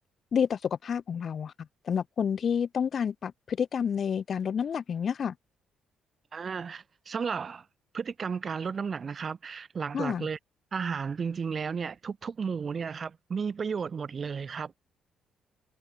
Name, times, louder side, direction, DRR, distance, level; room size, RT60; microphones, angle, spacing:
voice 1, 0.3-1.5 1.8-5.3 9.9-10.3, left 7 dB, 50° left, 0.7 m, -29 dB
voice 2, 6.3-7.7 7.9-10.4 10.7-14.7, right 6 dB, 45° right, 2.4 m, -33 dB
cardioid pair, 90°, 0 cm